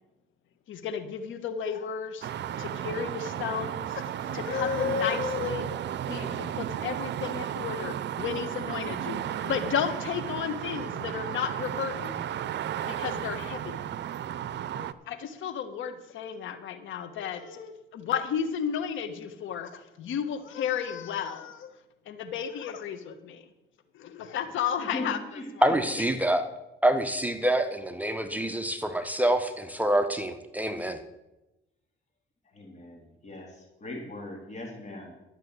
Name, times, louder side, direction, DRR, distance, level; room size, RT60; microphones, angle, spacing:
voice 1, 0.7-2.3 2.6-5.8 6.1-12.2 12.8-13.8 14.7-21.7 22.1-23.4 23.9-25.2, left 8 dB, 80° left, 10 dB, 1.3 m, -33 dB
sound 1, 2.2-14.9, right 10 dB, 65° right, 0.6 m, -34 dB
voice 2, 24.8-25.8 26.2-26.3 32.5-35.1, left 1 dB, 35° left, 0 dB, 3.3 m, -40 dB
voice 3, 25.6-26.4 26.8-31.0, right 1 dB, 10° right, 8 dB, 1.0 m, -26 dB
12.0 x 6.6 x 8.1 m, 0.97 s
cardioid pair, 90°, 20 cm